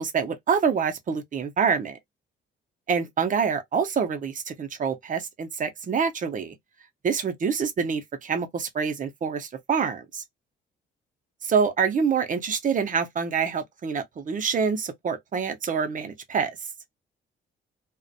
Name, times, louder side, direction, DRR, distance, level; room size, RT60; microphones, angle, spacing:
voice 1, 0.0-2.0 2.9-6.6 7.0-10.2 11.4-16.5, right 6 dB, 40° right, 0.6 m, -26 dB
2.3 x 2.1 x 2.6 m
cardioid pair, 90°, 20 cm